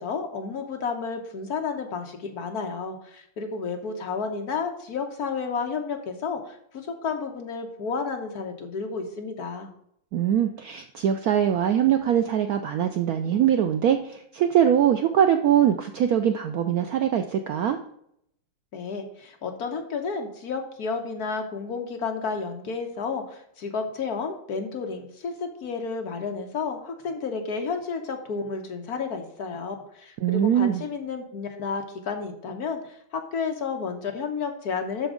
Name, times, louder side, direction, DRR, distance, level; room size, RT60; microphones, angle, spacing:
voice 1, 0.0-9.7 18.7-35.1, left 5 dB, 60° left, 4 dB, 1.4 m, -31 dB
voice 2, 10.1-17.8 30.2-30.8, right 9 dB, 70° right, 7 dB, 0.9 m, -22 dB
12.0 x 4.5 x 3.7 m, 0.71 s
omnidirectional pair, 2.1 m